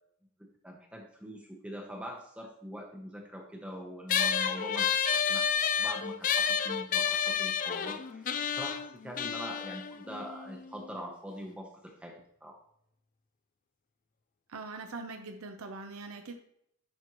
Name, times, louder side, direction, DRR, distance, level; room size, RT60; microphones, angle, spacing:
voice 1, 0.6-5.5 5.8-12.6, equal, 5° right, 0 dB, 0.9 m, -43 dB
sound 1, 4.1-10.9, left 7 dB, 35° left, 0.3 m, -30 dB
voice 2, 14.5-16.3, right 3 dB, 80° right, 5 dB, 0.8 m, -42 dB
10.5 x 4.2 x 3.1 m, 0.71 s
head